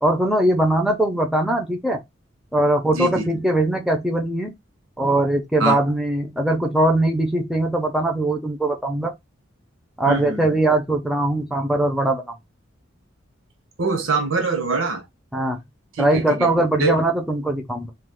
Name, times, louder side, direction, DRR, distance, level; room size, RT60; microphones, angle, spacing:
voice 1, 0.0-2.0 2.5-4.5 5.0-9.1 10.0-12.2 15.3-15.6 16.0-17.9, right 1 dB, ahead, 0.5 m, -21 dB
voice 2, 2.9-3.3 5.6-5.8 10.1-10.5 13.8-15.1 15.9-16.5 16.8-17.0, right 3 dB, 80° right, 0.8 m, -23 dB
2.3 x 2.3 x 3.4 m
head